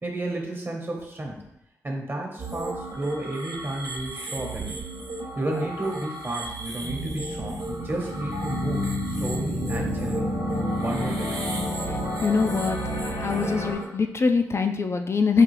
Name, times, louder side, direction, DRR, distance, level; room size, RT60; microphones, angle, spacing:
voice 1, 0.0-1.4 1.8-4.8 5.3-10.3 10.8-11.5, right 1 dB, 35° right, 0 dB, 1.1 m, -32 dB
sound 1, 2.4-13.9, right 2 dB, 65° right, 0.7 m, -36 dB
sound 2, 6.8-13.7, left 1 dB, 70° left, 1.1 m, -30 dB
voice 2, 11.8-12.8 13.2-15.4, left 4 dB, 40° left, 6 dB, 0.3 m, -23 dB
4.8 x 2.4 x 3.1 m, 0.83 s
supercardioid pair, 45°, 7 cm